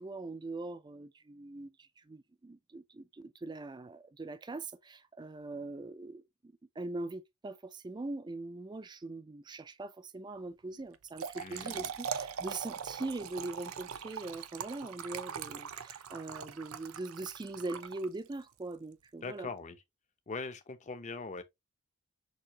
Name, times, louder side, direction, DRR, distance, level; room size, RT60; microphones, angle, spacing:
voice 1, 0.0-19.5, right 2 dB, 20° right, 0.4 m, -42 dB
Trickle dribble / Fill (with liquid), 10.9-18.4, right 7 dB, 75° right, 0.6 m, -41 dB
voice 2, 11.4-11.9 19.2-19.8 20.3-21.4, left 4 dB, 35° left, 0.7 m, -41 dB
6.5 x 2.7 x 2.8 m
head